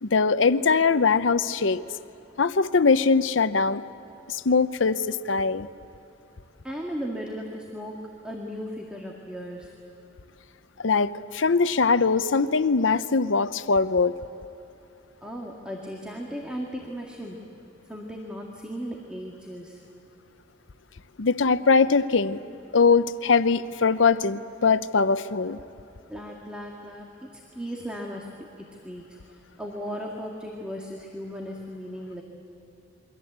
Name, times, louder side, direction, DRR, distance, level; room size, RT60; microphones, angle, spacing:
voice 1, 0.0-1.8 2.4-3.8 4.3-5.7 10.8-14.1 21.2-22.4 22.7-25.6, left 4 dB, 85° left, 13 dB, 0.7 m, -22 dB
voice 2, 6.6-9.7 15.2-17.4 17.9-19.8 26.1-32.2, equal, 5° right, -1 dB, 2.0 m, -36 dB
28.5 x 23.5 x 8.1 m, 2.8 s
head